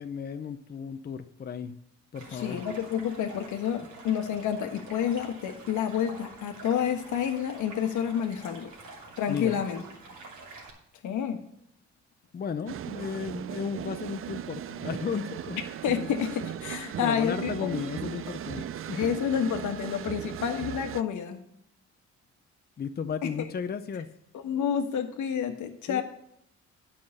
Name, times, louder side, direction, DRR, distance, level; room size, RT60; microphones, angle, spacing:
voice 1, 0.0-1.7 2.1-2.6 9.3-9.6 12.3-15.6 16.7-19.1 22.8-24.1 25.9-26.0, left 6 dB, 30° left, 9 dB, 0.6 m, -34 dB
Stream, 2.1-10.7, right 3 dB, 70° right, 2.9 m, -47 dB
voice 2, 2.3-8.7 9.2-9.8 11.0-11.4 15.8-18.1 18.6-18.7 18.9-21.4 24.4-26.0, left 8 dB, 80° left, 6 dB, 1.3 m, -29 dB
sound 1, 12.7-21.0, right 11 dB, 45° right, 0.4 m, -37 dB
9.5 x 5.7 x 6.5 m, 0.74 s
cardioid pair, 90°, 30 cm